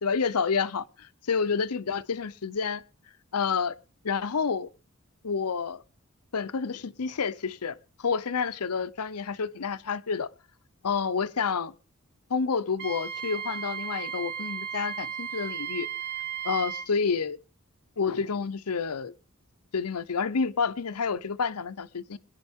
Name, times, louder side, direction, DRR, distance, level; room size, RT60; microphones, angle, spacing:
voice 1, 0.0-2.8 3.3-3.7 4.0-4.7 5.2-5.8 6.3-10.3 10.8-11.7 12.3-15.9 16.4-17.4 18.0-19.1 19.7-22.2, left 5 dB, 90° left, 0.7 m, -29 dB
Wind instrument woodwind instrument, 12.8-16.9, right 8 dB, 45° right, 1.0 m, -35 dB
21.5 x 10.5 x 3.6 m
head